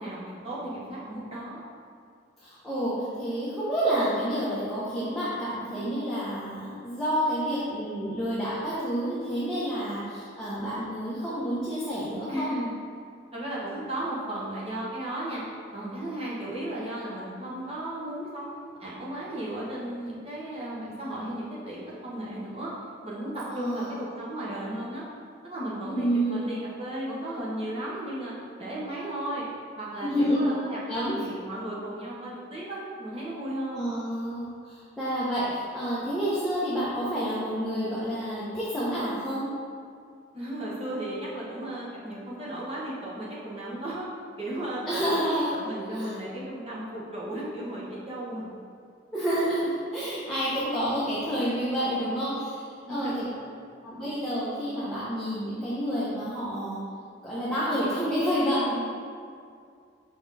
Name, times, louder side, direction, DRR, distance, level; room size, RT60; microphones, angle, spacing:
voice 1, 0.0-1.6 12.3-12.7 13.3-15.4 15.7-22.7 23.0-25.0 25.4-28.3 28.6-29.4 29.8-33.8 40.3-44.1 44.4-45.1 45.5-48.5 51.8-52.2 52.9-53.6, right 1 dB, 30° right, -7 dB, 1.2 m, -35 dB
voice 2, 2.4-12.5 23.4-24.0 25.8-26.5 30.0-30.5 30.9-31.2 33.7-39.5 44.9-45.5 45.9-46.1 49.1-53.2 53.8-56.8 57.2-58.8, equal, ahead, -11 dB, 0.9 m, -29 dB
5.6 x 4.3 x 4.1 m, 2.2 s
head